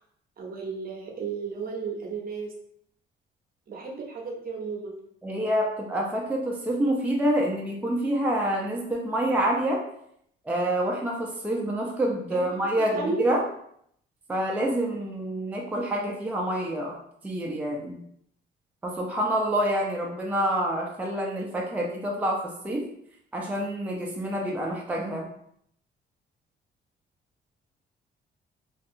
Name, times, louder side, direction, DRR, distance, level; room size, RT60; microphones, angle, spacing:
voice 1, 0.4-2.5 3.7-4.9 12.3-12.6 12.9-13.3, right 4 dB, 50° right, 0 dB, 0.7 m, -33 dB
voice 2, 5.2-9.8 10.4-13.4 14.3-17.0 17.2-18.0 18.8-22.9 23.3-25.3, right 1 dB, 10° right, -2 dB, 0.4 m, -27 dB
2.5 x 2.2 x 2.7 m, 0.70 s
cardioid pair, 90°, 20 cm